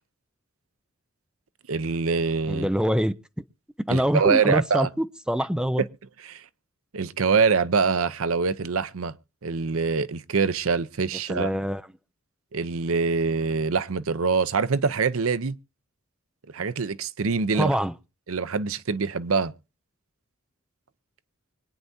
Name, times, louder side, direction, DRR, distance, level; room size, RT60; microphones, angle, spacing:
voice 1, 1.7-2.7 3.9-4.9 6.2-6.4 6.9-9.1 9.4-11.5 12.5-15.6 16.5-17.7 18.3-19.5, right 5 dB, 75° right, 0.7 m, -24 dB
voice 2, 2.5-3.1 3.9-5.9 11.3-11.8 17.5-17.9, equal, 5° right, 0.6 m, -24 dB
25.0 x 9.5 x 2.7 m
head